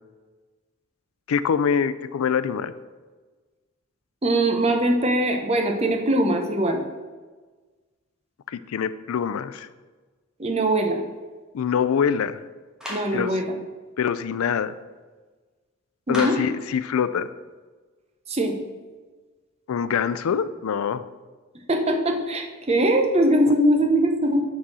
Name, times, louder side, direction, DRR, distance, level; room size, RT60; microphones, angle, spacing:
voice 1, 1.3-2.7 8.5-9.7 11.5-12.4 13.1-13.3 14.0-14.7 16.1-17.3 19.7-21.0, left 7 dB, 85° left, 14 dB, 0.4 m, -24 dB
voice 2, 4.2-6.8 10.4-11.0 12.9-13.6 16.1-16.4 18.3-18.6 21.7-24.4, right 1 dB, 30° right, 4 dB, 0.8 m, -21 dB
Clapping, 12.8-13.2 16.1-16.6, left 1 dB, 5° right, 1.3 m, -32 dB
6.1 x 4.1 x 6.2 m, 1.3 s
head